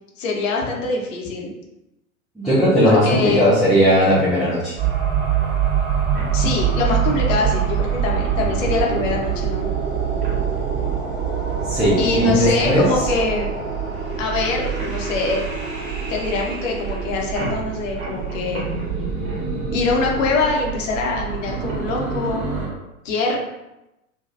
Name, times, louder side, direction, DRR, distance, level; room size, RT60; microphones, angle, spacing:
voice 1, 0.2-1.5 2.8-3.5 6.3-9.7 12.0-13.5 14.2-15.4 16.1-18.6 19.7-22.4 23.0-23.4, left 3 dB, 55° left, 0 dB, 0.9 m, -23 dB
voice 2, 2.4-4.7 11.7-13.0, equal, ahead, -12 dB, 0.4 m, -17 dB
sound 1, 4.8-22.7, right 7 dB, 30° right, 1.3 m, -24 dB
3.3 x 2.2 x 2.5 m, 0.94 s
figure-of-eight pair, 90°, 44 cm